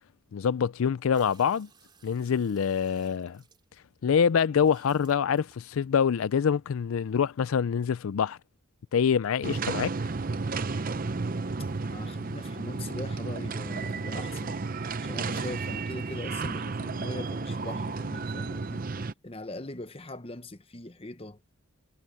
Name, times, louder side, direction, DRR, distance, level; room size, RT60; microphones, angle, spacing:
voice 1, 0.3-1.7 2.0-3.4 4.0-8.4 8.9-10.0, left 7 dB, 80° left, 0.4 m, -25 dB
sound 1, 1.1-4.1 4.6-5.9 6.5-6.6, right 5 dB, 20° right, 3.5 m, -60 dB
sound 2, 9.4-19.1, right 4 dB, 40° right, 0.6 m, -32 dB
voice 2, 11.6-14.6 15.0-18.9 19.2-21.4, left 2 dB, 25° left, 1.0 m, -41 dB
head